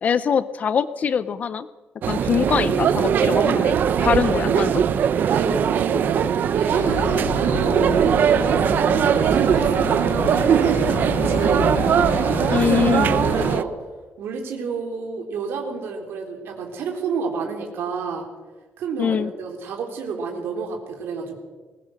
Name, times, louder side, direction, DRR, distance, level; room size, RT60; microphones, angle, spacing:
voice 1, 0.0-1.7 2.1-4.8 12.5-13.2 19.0-19.3, left 7 dB, 40° left, 15 dB, 0.5 m, -23 dB
sound 1, 2.0-13.6, right 8 dB, 50° right, 0.7 m, -20 dB
voice 2, 2.1-2.7 3.7-4.2 5.3-6.3 6.5-11.7 13.2-13.7 14.2-18.3 18.8-21.4, right 5 dB, 75° right, 2 dB, 3.7 m, -30 dB
sound 2, 6.7-13.6, left 8 dB, 75° left, 1.1 m, -30 dB
21.5 x 20.0 x 6.5 m, 1.3 s
cardioid pair, 175°, 4 cm